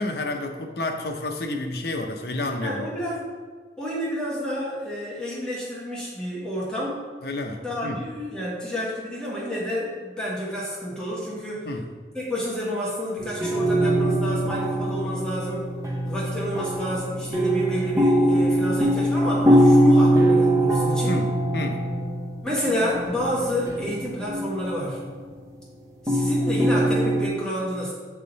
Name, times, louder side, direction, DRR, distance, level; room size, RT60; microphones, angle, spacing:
voice 1, 0.0-2.8 7.2-8.1 11.6-11.9 21.1-21.9, left 2 dB, 60° left, 4 dB, 0.7 m, -30 dB
voice 2, 2.6-3.3 3.8-7.0 7.6-11.7 12.1-15.7 16.0-21.2 22.4-25.0 26.0-27.9, equal, 5° left, -7 dB, 1.3 m, -29 dB
sound 1, 13.2-25.0 26.1-27.3, right 1 dB, 15° right, 0.8 m, -22 dB
8.4 x 3.6 x 4.0 m, 1.5 s
head